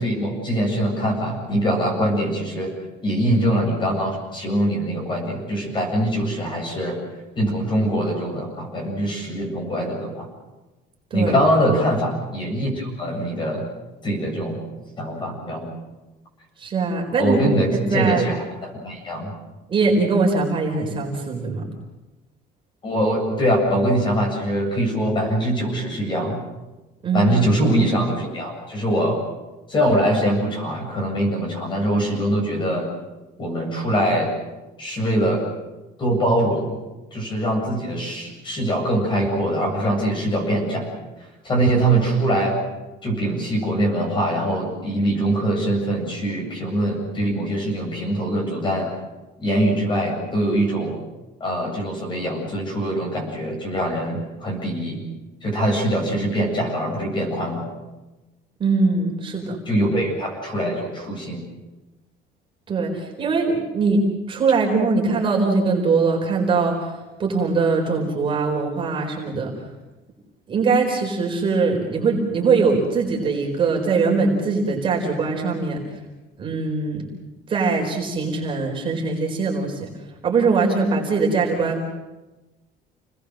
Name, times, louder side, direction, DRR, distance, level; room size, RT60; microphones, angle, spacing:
voice 1, 0.0-2.7 3.0-7.0 7.4-10.3 11.1-13.7 14.0-14.6 15.0-15.7 17.2-19.3 22.8-26.4 27.1-29.2 29.7-32.9 33.4-34.3 34.8-35.4 36.0-36.8 37.1-40.9 41.4-42.6 43.0-48.9 49.4-51.0 51.4-55.0 55.4-57.7 59.7-61.4, right 1 dB, 25° left, 1 dB, 7.8 m, -23 dB
voice 2, 16.6-17.4 17.7-18.2 19.7-21.6 27.0-27.3 58.6-59.6 62.7-64.0 64.3-66.9 67.2-69.5 70.5-75.8 76.4-77.1 77.5-79.9 80.2-81.8, right 4 dB, 30° right, -1 dB, 4.4 m, -21 dB
29.5 x 20.5 x 6.6 m, 1.1 s
cardioid pair, 175°, 18 cm